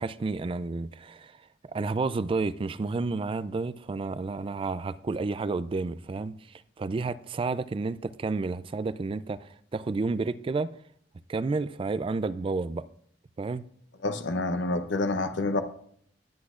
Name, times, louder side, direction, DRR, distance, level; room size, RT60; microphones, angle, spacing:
voice 1, 0.0-1.3 1.6-6.3 6.8-10.7 11.3-12.8 13.4-13.6, right 3 dB, 30° right, 0.3 m, -30 dB
voice 2, 14.0-15.6, left 2 dB, 80° left, 0.7 m, -28 dB
19.5 x 8.3 x 2.4 m
head